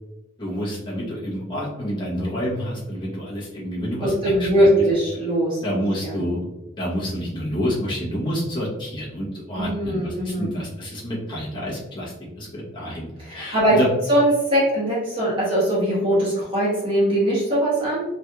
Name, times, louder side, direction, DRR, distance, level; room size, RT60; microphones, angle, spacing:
voice 1, 0.4-4.8 5.6-6.5 6.8-13.9, equal, 25° left, -6 dB, 0.9 m, -28 dB
voice 2, 4.0-5.6 6.0-6.2 9.5-10.5 13.2-13.8 14.1-18.0, right 1 dB, 25° right, -9 dB, 1.2 m, -21 dB
3.2 x 2.8 x 2.3 m, 0.97 s
head